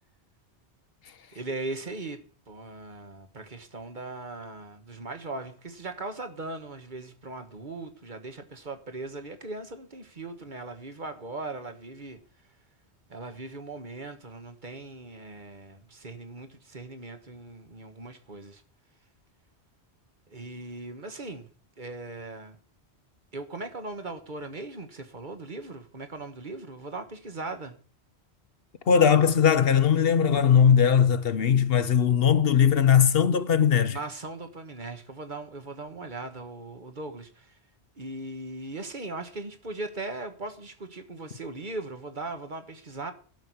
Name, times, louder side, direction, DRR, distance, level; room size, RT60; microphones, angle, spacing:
voice 1, 1.3-12.2 13.1-18.6 20.3-21.5 21.8-22.6 23.3-27.7 33.9-37.6 38.0-43.1, right 2 dB, 45° right, 1.5 m, -39 dB
voice 2, 28.9-34.0, left 7 dB, 65° left, 1.0 m, -20 dB
12.0 x 6.1 x 9.5 m
omnidirectional pair, 1.1 m